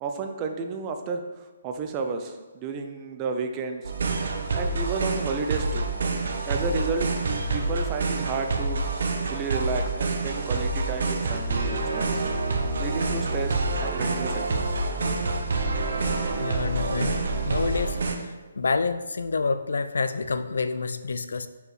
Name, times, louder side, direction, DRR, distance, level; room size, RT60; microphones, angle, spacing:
voice 1, 0.0-4.2 4.5-5.9 6.4-8.8 9.3-12.3 12.8-14.6, right 4 dB, 15° right, 5 dB, 0.4 m, -32 dB
sound 1, 3.8-18.1, right 3 dB, 55° right, 0.8 m, -27 dB
voice 2, 16.4-18.0 18.6-21.5, left 4 dB, 80° left, 12 dB, 0.4 m, -28 dB
5.0 x 4.7 x 4.8 m, 1.3 s
hypercardioid pair, 175°, 0 cm